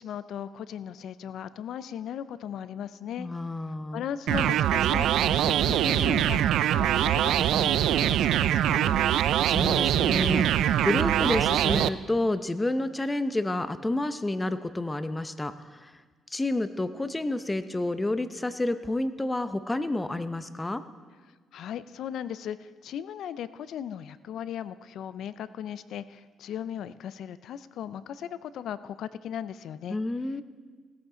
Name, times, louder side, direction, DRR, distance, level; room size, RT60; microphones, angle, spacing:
voice 1, 0.0-3.3 3.9-9.1 21.5-30.0, left 9 dB, 75° left, 15 dB, 0.4 m, -37 dB
voice 2, 3.2-4.0 9.5-16.0 16.3-20.8 29.9-30.4, left 2 dB, 15° left, 12 dB, 0.7 m, -29 dB
sound 1, 4.3-11.9, right 11 dB, 80° right, 0.3 m, -23 dB
17.0 x 13.5 x 3.8 m, 1.5 s
cardioid pair, 90°, 0 cm